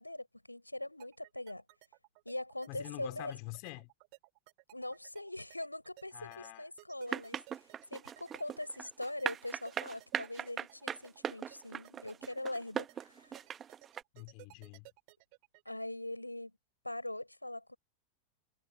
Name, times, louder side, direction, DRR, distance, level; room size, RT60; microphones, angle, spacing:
voice 1, 0.0-1.6 2.2-3.4 4.7-13.4 15.6-16.5 16.8-17.8, left 1 dB, 85° left, 4.9 m, -42 dB
sound 1, 1.0-15.7, right 31 dB, 45° right, 6.6 m, -58 dB
voice 2, 2.7-3.9 6.1-6.7 14.1-14.9, left 36 dB, 45° left, 2.8 m, -46 dB
sound 2, 7.1-14.0, right 8 dB, 25° right, 1.2 m, -39 dB
figure-of-eight pair, 90°, 0 cm